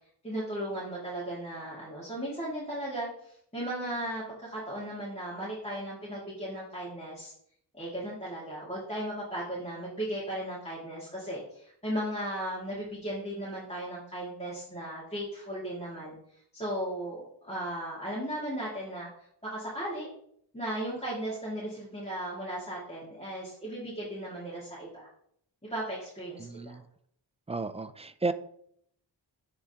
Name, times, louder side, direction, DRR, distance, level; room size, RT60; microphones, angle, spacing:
voice 1, 0.2-7.3 7.7-19.1 19.4-20.1 20.5-25.1 25.7-26.8, right 1 dB, 15° left, -8 dB, 2.1 m, -36 dB
voice 2, 26.4-26.8 27.5-28.3, right 3 dB, 15° right, 11 dB, 0.3 m, -33 dB
10.0 x 3.5 x 2.9 m, 0.67 s
cardioid pair, 60°, 45 cm